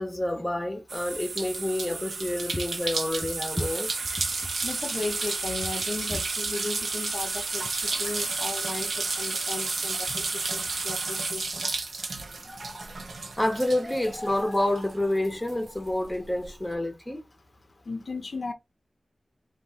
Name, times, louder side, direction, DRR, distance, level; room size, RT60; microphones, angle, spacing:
voice 1, 0.0-3.9 6.1-6.2 12.4-12.8 13.4-17.2, left 1 dB, 10° left, 1.1 m, -28 dB
sound 1, 0.9-14.9 15.2-16.5, right 3 dB, 85° right, 0.8 m, -32 dB
voice 2, 4.6-11.7 17.8-18.5, left 3 dB, 65° left, 0.5 m, -36 dB
4.5 x 2.6 x 4.0 m
wide cardioid pair, 95°, 0 cm